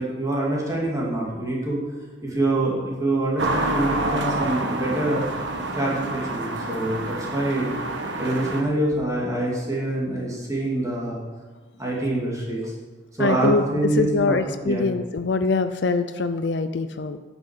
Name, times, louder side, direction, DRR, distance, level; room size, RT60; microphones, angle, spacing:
voice 1, 0.0-1.8 2.2-5.2 5.7-7.7 8.2-11.2 11.8-12.7 13.2-14.9, right 1 dB, 20° right, -4 dB, 2.4 m, -25 dB
sound 1, 3.4-8.6, right 2 dB, 75° right, 1.4 m, -28 dB
voice 2, 13.2-13.6 14.0-17.2, left 4 dB, 65° left, 9 dB, 0.5 m, -23 dB
11.0 x 6.2 x 8.2 m, 1.3 s
head